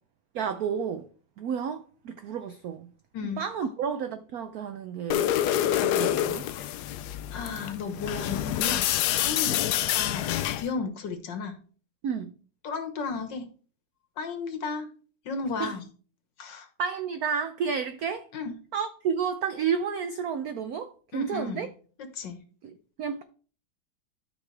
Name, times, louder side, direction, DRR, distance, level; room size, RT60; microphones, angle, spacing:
voice 1, 0.3-1.1 1.4-2.9 3.4-5.3 5.8-6.5 12.0-12.3 15.6-15.8 16.8-18.3 18.7-21.7 22.6-23.2, right 7 dB, 80° right, 0.8 m, -31 dB
sound 1, 5.1-10.7, left 12 dB, 80° left, 0.9 m, -27 dB
voice 2, 7.3-8.9 9.2-11.6 12.6-13.5 14.2-14.9 15.3-15.8 16.4-16.7 18.3-18.5 21.1-21.7 22.2-22.4, left 4 dB, 60° left, 1.9 m, -34 dB
13.0 x 5.5 x 3.3 m
omnidirectional pair, 2.3 m